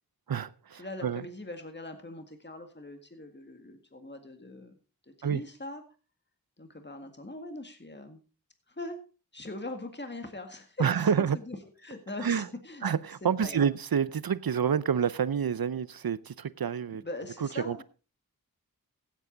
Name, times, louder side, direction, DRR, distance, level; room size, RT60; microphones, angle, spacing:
voice 1, 0.3-1.2 5.2-5.4 10.8-11.4 12.2-12.5 12.8-17.0 17.4-17.8, right 7 dB, 80° right, 0.6 m, -28 dB
voice 2, 0.8-4.8 5.2-5.8 6.6-8.2 8.7-9.0 9.3-11.6 11.8-12.9 13.2-13.7 16.9-17.8, left 2 dB, 30° left, 1.9 m, -41 dB
16.0 x 8.4 x 3.9 m
wide cardioid pair, 40°, 36 cm